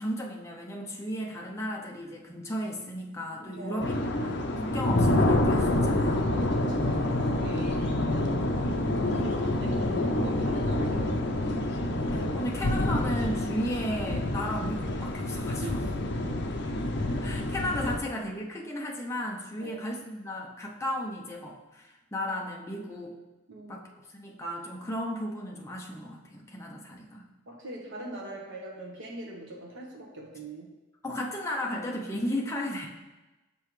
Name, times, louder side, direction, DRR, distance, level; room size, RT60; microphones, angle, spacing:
voice 1, 0.0-6.3 12.1-15.6 17.2-23.2 23.7-27.3 31.0-32.9, equal, 15° left, -1 dB, 0.6 m, -34 dB
voice 2, 3.5-3.9 6.4-8.4 9.1-11.5 15.6-16.1 19.6-19.8 23.5-23.8 27.5-30.7, right 1 dB, 65° right, -2 dB, 1.3 m, -42 dB
sound 1, 3.8-18.0, left 1 dB, 55° left, 0.6 m, -27 dB
6.6 x 5.4 x 3.2 m, 1.1 s
head